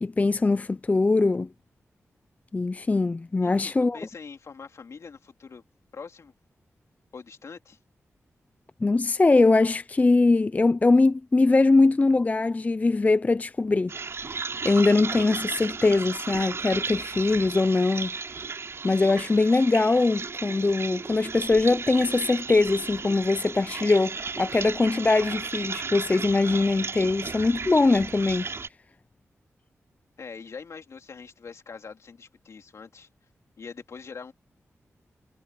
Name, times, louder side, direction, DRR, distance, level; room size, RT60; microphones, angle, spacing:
voice 1, 0.0-1.5 2.5-4.0 8.8-13.9 14.6-18.1 18.8-28.5, left 3 dB, 30° left, 0.5 m, -22 dB
voice 2, 3.4-5.6 5.9-6.3 7.1-7.8 30.2-33.1 33.6-34.3, left 5 dB, 70° left, 3.2 m, -43 dB
sound 1, 13.9-28.7, right 4 dB, 55° right, 3.7 m, -34 dB
wide cardioid pair, 80°, 5 cm